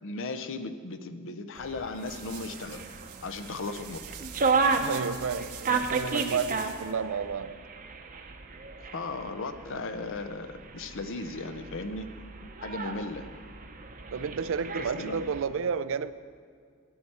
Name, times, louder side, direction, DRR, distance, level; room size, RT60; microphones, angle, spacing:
voice 1, 0.0-2.8 3.2-4.1 8.9-12.1 12.6-13.3 14.8-15.3, left 3 dB, 60° left, 0.7 m, -36 dB
sound 1, 1.5-15.4, right 4 dB, 40° right, 0.8 m, -34 dB
sound 2, 1.5-6.9, right 10 dB, 85° right, 0.8 m, -45 dB
voice 2, 4.8-7.6 14.1-16.1, right 6 dB, 65° right, 0.4 m, -31 dB
14.5 x 10.0 x 4.3 m
head